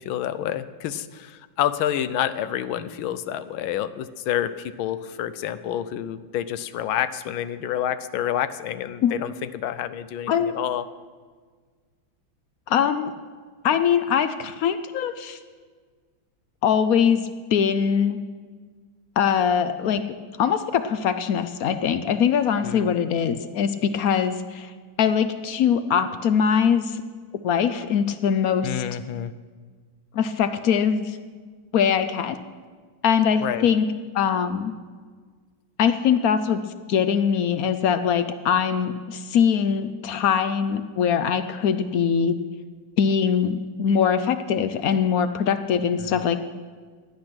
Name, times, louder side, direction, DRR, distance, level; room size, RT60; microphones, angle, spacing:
voice 1, 0.0-10.9 22.6-22.9 28.6-29.3 33.4-33.7 46.0-46.3, left 11 dB, 90° left, 13 dB, 1.5 m, -28 dB
voice 2, 10.3-10.6 12.7-13.1 13.6-15.4 16.6-17.2 17.5-18.2 19.2-20.0 20.4-24.7 25.0-27.0 27.4-28.8 30.1-31.2 31.7-32.4 33.0-33.8 34.1-34.8 35.8-36.6 36.9-42.4 43.0-46.4, left 7 dB, 70° left, 11 dB, 0.8 m, -22 dB
16.0 x 10.5 x 6.1 m, 1.5 s
omnidirectional pair, 2.1 m